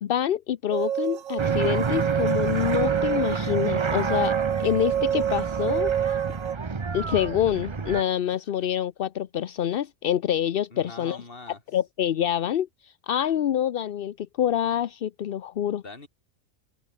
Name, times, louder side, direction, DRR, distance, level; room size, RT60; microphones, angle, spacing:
voice 1, 0.0-6.2 6.9-11.2 11.7-15.8, left 10 dB, 55° left, 0.7 m, -26 dB
sound 1, 0.7-6.6, right 10 dB, 65° right, 1.2 m, -27 dB
sound 2, 1.4-8.0, right 4 dB, 25° right, 0.6 m, -29 dB
voice 2, 10.7-11.6 15.8-16.1, left 3 dB, 40° left, 3.2 m, -42 dB
open air
omnidirectional pair, 1.5 m